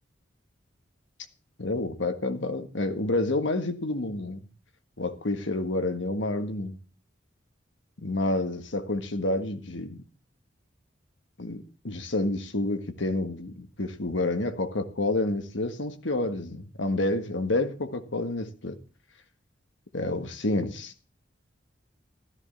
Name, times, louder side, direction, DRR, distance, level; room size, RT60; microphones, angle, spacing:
voice 1, 1.6-4.4 5.0-6.8 8.0-10.0 11.4-18.8 19.9-20.9, left 2 dB, 85° left, 1.6 m, -29 dB
14.0 x 13.0 x 4.2 m
head